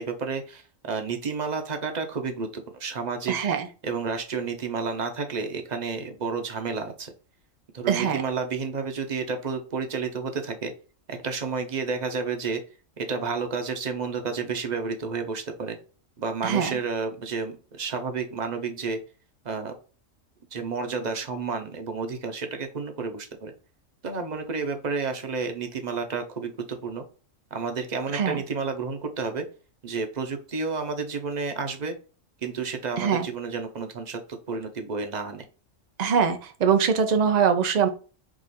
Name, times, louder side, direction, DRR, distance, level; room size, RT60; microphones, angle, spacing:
voice 1, 0.0-3.4 3.8-7.1 7.7-10.7 11.1-12.6 13.0-15.8 16.2-19.0 19.4-19.8 20.5-23.5 24.0-27.0 27.5-29.5 29.8-32.0 32.4-35.4, right 5 dB, 40° right, 5 dB, 0.7 m, -31 dB
voice 2, 3.3-3.7 7.9-8.2 16.4-16.7 28.1-28.4 33.0-33.3 36.0-37.9, right 7 dB, 80° right, 7 dB, 0.3 m, -22 dB
4.9 x 2.4 x 4.1 m, 0.36 s
omnidirectional pair, 1.4 m